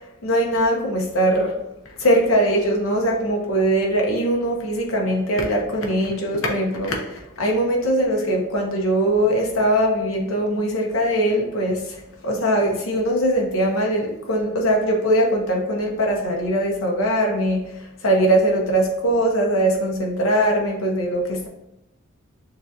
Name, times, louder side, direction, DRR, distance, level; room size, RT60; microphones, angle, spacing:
voice 1, 0.2-1.6 2.0-21.5, right 1 dB, 75° left, 0 dB, 0.9 m, -21 dB
6.6 x 2.5 x 2.7 m, 0.85 s
head